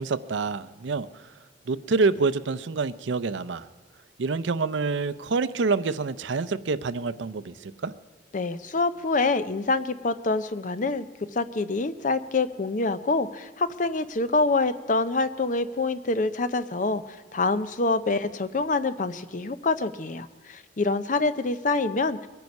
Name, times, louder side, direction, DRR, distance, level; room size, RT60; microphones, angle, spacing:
voice 1, 0.0-1.3 1.7-3.7 4.2-7.9, right 4 dB, 75° right, 15 dB, 0.5 m, -27 dB
voice 2, 8.3-11.1 11.3-22.3, left 3 dB, 45° left, 13 dB, 0.6 m, -26 dB
22.5 x 9.4 x 5.4 m, 1.4 s
head